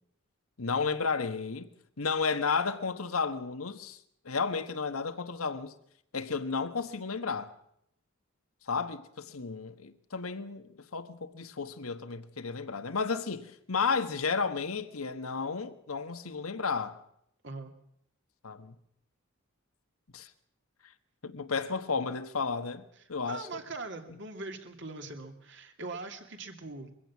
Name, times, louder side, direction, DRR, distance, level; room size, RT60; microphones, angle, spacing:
voice 1, 0.6-1.7 2.0-4.0 4.2-5.7 6.1-7.5 8.7-17.0 18.4-18.7 20.1-20.3 21.2-22.8 23.1-23.5, left 5 dB, 90° left, 1.5 m, -32 dB
voice 2, 23.2-26.9, right 3 dB, 55° right, 2.7 m, -41 dB
23.0 x 16.0 x 7.3 m
head